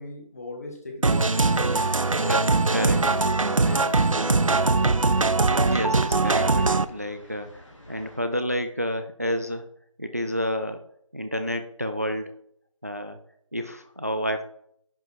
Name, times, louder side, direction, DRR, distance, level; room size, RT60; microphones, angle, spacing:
voice 1, 0.0-1.8 2.1-2.4 2.8-4.8, left 2 dB, 30° left, 2 dB, 1.8 m, -38 dB
sound 1, 1.0-6.9, right 3 dB, 75° right, 0.7 m, -21 dB
sound 2, 1.1-8.2, left 1 dB, 65° left, 3.0 m, -48 dB
voice 2, 5.7-9.7 10.0-10.8 11.1-12.4 12.8-13.2 13.5-14.4, equal, 30° right, 8 dB, 0.4 m, -30 dB
10.5 x 5.5 x 4.5 m, 0.69 s
figure-of-eight pair, 170°, 17 cm